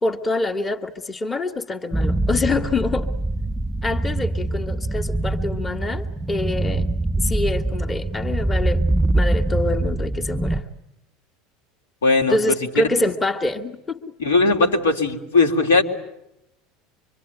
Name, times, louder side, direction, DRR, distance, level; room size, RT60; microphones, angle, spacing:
voice 1, 0.0-3.1 3.8-6.9 7.2-8.8 9.2-10.6 12.3-14.1, left 2 dB, 20° left, 5 dB, 1.8 m, -25 dB
sound 1, 1.9-10.6, right 2 dB, ahead, 1.7 m, -23 dB
voice 2, 12.0-12.4 12.8-12.9 14.2-15.8, left 3 dB, 80° left, 1 dB, 3.0 m, -18 dB
25.0 x 24.5 x 9.3 m, 0.86 s
figure-of-eight pair, 75°, 0 cm